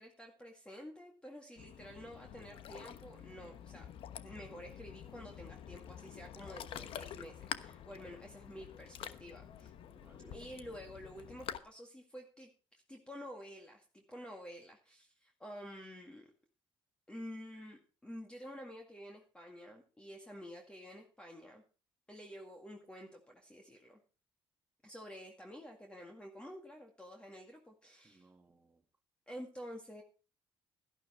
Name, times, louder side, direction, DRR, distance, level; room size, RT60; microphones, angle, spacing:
voice 1, 0.0-3.9 4.2-9.7 10.3-16.3 17.1-21.6 22.1-24.0 24.8-28.3 29.3-30.0, equal, 10° left, 2.0 m, -50 dB
Ocean, 1.6-11.6, left 9 dB, 70° left, 1.1 m, -48 dB
voice 2, 9.9-10.4 28.0-28.8, right 3 dB, 20° right, 1.8 m, -63 dB
12.0 x 11.5 x 4.4 m
cardioid pair, 110°, 10 cm